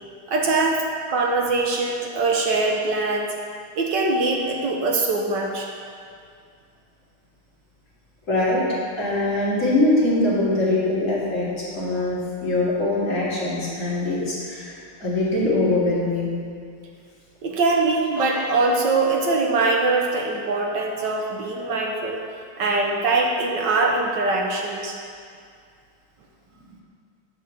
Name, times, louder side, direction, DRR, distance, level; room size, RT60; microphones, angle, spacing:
voice 1, 0.3-3.3 3.7-5.7 17.4-22.2 22.6-24.9, right 3 dB, 60° right, 0 dB, 1.4 m, -22 dB
voice 2, 8.3-8.6 9.0-16.3, left 2 dB, 35° left, -9 dB, 2.9 m, -22 dB
11.0 x 4.0 x 7.2 m, 2.3 s
omnidirectional pair, 2.4 m